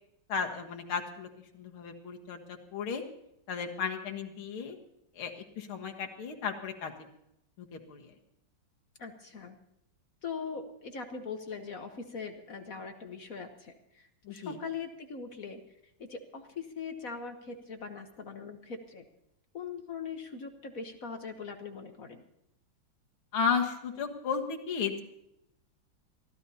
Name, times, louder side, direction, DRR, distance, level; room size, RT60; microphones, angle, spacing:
voice 1, 0.3-1.3 1.5-3.0 3.5-4.8 5.2-6.9 7.6-8.1 14.3-14.6 23.3-25.0, left 6 dB, 85° left, 3 dB, 2.4 m, -34 dB
voice 2, 9.0-9.6 10.2-15.6 16.0-19.0 19.5-22.2, left 5 dB, 50° left, 6 dB, 1.3 m, -41 dB
23.5 x 15.0 x 2.8 m, 0.80 s
omnidirectional pair, 2.3 m